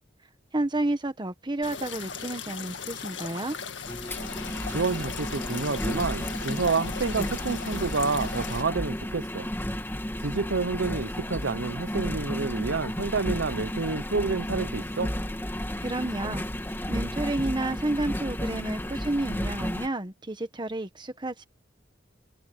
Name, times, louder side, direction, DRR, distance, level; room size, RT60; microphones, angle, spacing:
voice 1, 0.5-3.5 15.8-16.4 16.9-21.5, right 2 dB, 25° right, 1.3 m, -30 dB
sound 1, 1.6-8.6, left 6 dB, 70° left, 1.9 m, -38 dB
Engine, 3.8-19.9, equal, 10° left, 2.4 m, -32 dB
voice 2, 4.7-9.5 10.2-15.1, right 4 dB, 75° right, 0.8 m, -29 dB
head